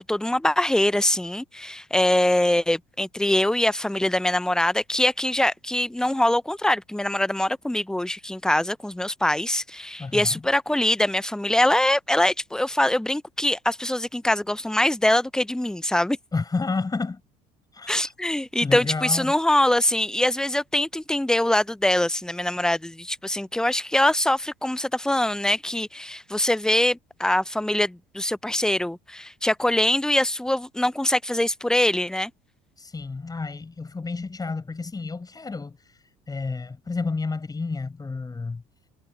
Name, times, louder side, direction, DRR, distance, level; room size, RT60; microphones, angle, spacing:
voice 1, 0.1-16.2 17.9-32.3, left 1 dB, 5° left, 0.9 m, -23 dB
voice 2, 10.0-10.4 16.3-17.2 17.7-18.1 18.6-19.3 32.8-38.6, left 4 dB, 20° left, 6.2 m, -31 dB
figure-of-eight pair, 60°, 18 cm